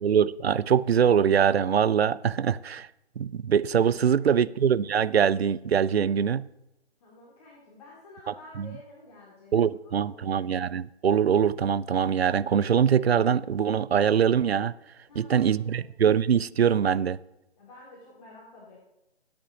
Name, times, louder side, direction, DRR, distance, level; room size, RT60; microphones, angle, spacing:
voice 1, 0.0-2.9 3.2-6.4 8.6-8.7 9.5-14.7 15.2-17.2, right 8 dB, 70° right, 0.5 m, -23 dB
voice 2, 4.0-4.3 7.0-10.5 15.1-15.8 17.5-18.9, left 2 dB, 35° left, 2.7 m, -51 dB
18.5 x 8.7 x 2.8 m
figure-of-eight pair, 145°, 33 cm